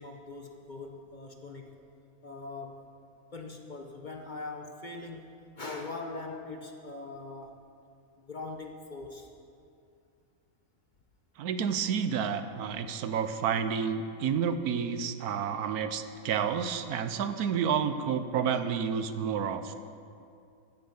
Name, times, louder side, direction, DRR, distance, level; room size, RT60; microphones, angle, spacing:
voice 1, 0.0-1.8 2.2-2.8 3.3-5.3 5.6-7.6 8.2-9.3 12.9-13.1, left 3 dB, 40° left, 3 dB, 0.9 m, -41 dB
voice 2, 11.4-19.8, right 7 dB, 85° right, 10 dB, 1.2 m, -30 dB
15.0 x 7.7 x 7.1 m, 2.5 s
omnidirectional pair, 1.6 m